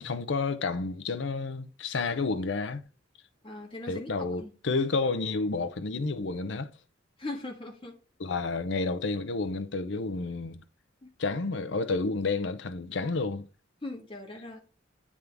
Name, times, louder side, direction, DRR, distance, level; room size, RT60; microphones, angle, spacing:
voice 1, 0.0-2.8 3.9-6.7 8.2-10.6 11.2-13.5, left 3 dB, 65° left, 0.6 m, -30 dB
voice 2, 3.4-4.1 4.4-4.5 7.2-7.9 11.0-11.1 13.8-14.6, left 2 dB, 25° left, 1.6 m, -39 dB
9.4 x 3.6 x 3.4 m
head